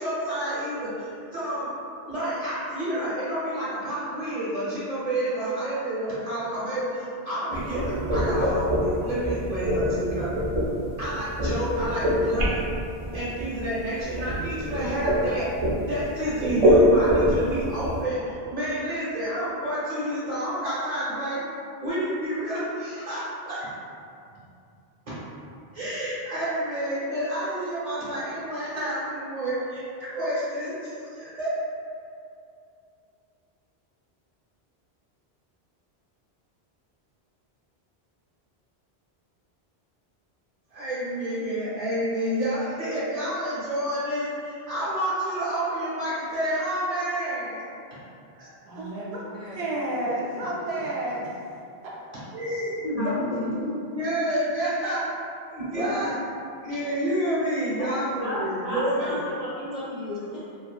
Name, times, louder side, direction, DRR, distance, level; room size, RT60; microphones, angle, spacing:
voice 1, 0.0-1.7 2.0-10.3 11.0-12.7 13.1-15.5 15.8-21.4 21.8-23.7 24.3-24.4 25.1-25.2 25.7-31.6 40.7-47.6 48.4-48.5 52.3-55.0 55.5-56.1 56.6-59.2, right 1 dB, 40° right, -10 dB, 0.9 m, -29 dB
sound 1, 7.5-18.0, equal, 60° right, 0.3 m, -25 dB
voice 2, 48.6-51.3 51.8-52.0, right 1 dB, 80° right, -5 dB, 0.8 m, -31 dB
voice 3, 52.8-53.7 55.7-56.1 57.8-57.9 58.2-60.6, left 1 dB, 55° left, -10 dB, 0.4 m, -32 dB
2.6 x 2.4 x 2.2 m, 2.5 s
omnidirectional pair, 1.1 m